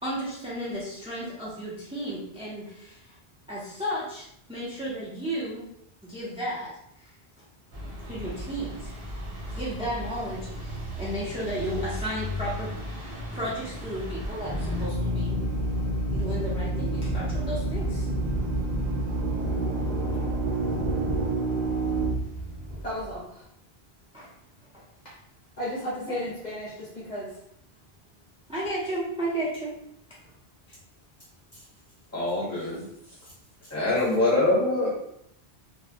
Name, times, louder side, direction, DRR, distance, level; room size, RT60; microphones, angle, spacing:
voice 1, 0.0-3.1 3.5-5.6 6.0-6.7 8.0-8.9 9.4-15.4 16.1-18.1 24.1-24.3 24.7-24.8 26.1-26.2 28.5-29.7, right 1 dB, 10° right, -7 dB, 0.4 m, -33 dB
sound 1, 7.7-14.9, equal, 70° right, 0.9 m, -36 dB
Drill, 14.4-23.0, right 1 dB, 50° right, 0.6 m, -28 dB
voice 2, 22.8-23.4 25.0-25.1 25.6-27.3 31.5-31.6, left 1 dB, 50° left, -6 dB, 0.7 m, -34 dB
voice 3, 32.1-32.8 33.7-34.9, left 2 dB, 15° left, -7 dB, 0.8 m, -24 dB
2.2 x 2.0 x 2.7 m, 0.73 s
omnidirectional pair, 1.1 m